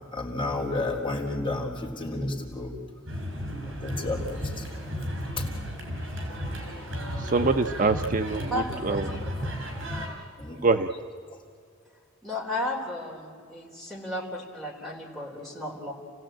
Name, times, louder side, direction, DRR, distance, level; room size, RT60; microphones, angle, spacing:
voice 1, 0.1-2.7 3.8-4.6 5.4-5.5 9.4-9.5 10.4-10.6, left 2 dB, 25° left, -1 dB, 3.7 m, -31 dB
sound 1, 3.1-10.1, equal, 70° right, 5.8 m, -34 dB
voice 2, 7.2-9.1 10.6-10.9, right 3 dB, 40° right, 8 dB, 0.6 m, -25 dB
voice 3, 8.5-9.0 9.9-10.1 12.2-15.9, left 1 dB, ahead, -4 dB, 3.8 m, -34 dB
29.0 x 16.5 x 8.9 m, 2.2 s
head